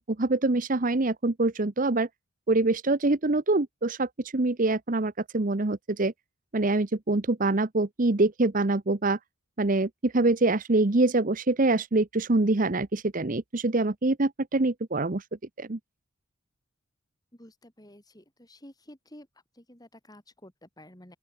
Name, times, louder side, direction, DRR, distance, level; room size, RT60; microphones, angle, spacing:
voice 1, 0.0-2.1 2.5-6.1 6.5-9.2 9.6-15.2 15.6-15.8, right 2 dB, 40° right, 0.9 m, -25 dB
voice 2, 17.3-19.3 19.5-21.2, left 1 dB, 20° left, 4.3 m, -51 dB
open air
head